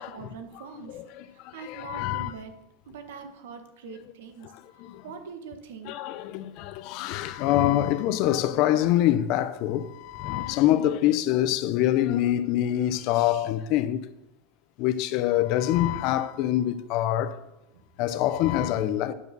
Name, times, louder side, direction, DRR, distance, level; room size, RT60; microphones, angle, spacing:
voice 1, 0.0-1.0 1.3-2.5 2.8-4.5 5.0-6.0 17.7-17.8, right 5 dB, 75° right, 1.3 m, -43 dB
voice 2, 0.9-1.2 1.6-2.3 5.9-14.0 14.8-17.4 18.0-19.1, left 13 dB, 40° left, 0.6 m, -25 dB
10.0 x 4.6 x 6.8 m
supercardioid pair, 165°, 0 cm